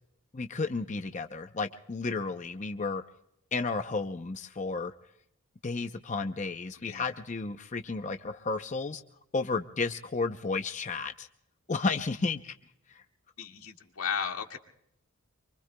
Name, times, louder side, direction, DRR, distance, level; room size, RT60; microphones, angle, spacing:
voice 1, 0.3-3.0 3.5-4.9 5.6-9.0 9.3-11.3 11.7-12.5 12.9-13.0, left 3 dB, 35° left, 7 dB, 0.6 m, -32 dB
voice 2, 13.4-14.6, left 7 dB, 75° left, 3 dB, 2.0 m, -34 dB
26.5 x 24.5 x 2.2 m, 0.76 s
head